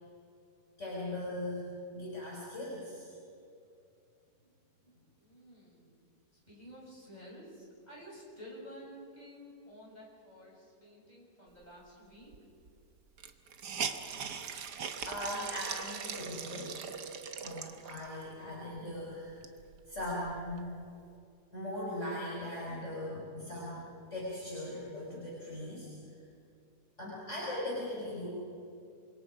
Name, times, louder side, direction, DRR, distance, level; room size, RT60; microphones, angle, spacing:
voice 1, 0.8-3.1 15.0-16.7 17.4-19.4 19.9-20.7 21.5-25.9 27.0-28.3, left 1 dB, 40° left, -6 dB, 5.1 m, -39 dB
voice 2, 4.8-12.3, equal, 25° left, -5 dB, 7.7 m, -52 dB
Hiss, 12.3-12.4 12.7-12.8 13.2-18.2 18.8-18.9 19.2-20.6, right 6 dB, 70° right, 1.8 m, -40 dB
28.0 x 25.0 x 5.0 m, 2.5 s
omnidirectional pair, 1.8 m